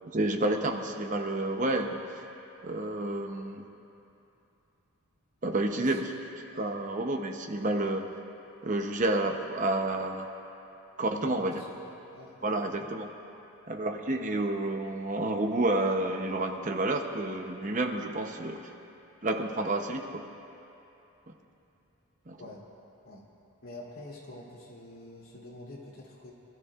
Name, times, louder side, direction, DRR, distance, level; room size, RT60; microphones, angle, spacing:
voice 1, 0.1-2.0 2.6-3.6 5.4-6.0 6.6-8.1 8.6-10.3 11.0-11.6 12.4-13.1 13.7-18.6 19.2-20.3 22.3-22.4, right 2 dB, 35° right, 4 dB, 0.8 m, -30 dB
voice 2, 11.0-12.9 22.4-22.6 23.0-23.2 23.6-26.3, left 2 dB, 70° left, -6 dB, 3.0 m, -47 dB
26.0 x 13.5 x 2.4 m, 2.8 s
head